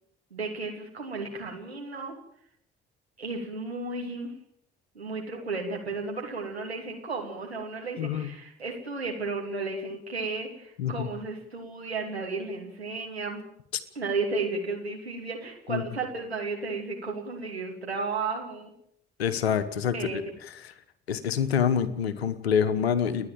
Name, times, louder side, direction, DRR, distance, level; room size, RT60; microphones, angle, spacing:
voice 1, 0.3-2.2 3.2-4.3 4.9-13.4 13.9-18.7 19.9-20.2, right 3 dB, 90° right, 0 dB, 2.9 m, -33 dB
voice 2, 8.0-8.3 10.8-11.1 15.7-15.8 19.2-20.7 21.1-23.3, left 8 dB, 80° left, 14 dB, 1.2 m, -27 dB
29.5 x 10.5 x 9.0 m, 0.70 s
figure-of-eight pair, 45°, 31 cm